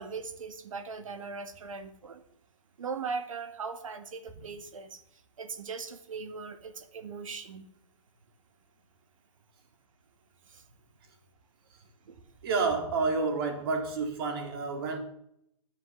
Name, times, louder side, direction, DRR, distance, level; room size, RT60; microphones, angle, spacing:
voice 1, 0.0-2.2 2.8-5.0 5.4-7.6 10.5-10.6 12.1-12.2, right 5 dB, 90° right, 9 dB, 2.1 m, -39 dB
voice 2, 12.4-15.0, right 4 dB, 50° right, 5 dB, 3.9 m, -29 dB
13.0 x 9.9 x 7.2 m, 0.73 s
hypercardioid pair, 155°, 16 cm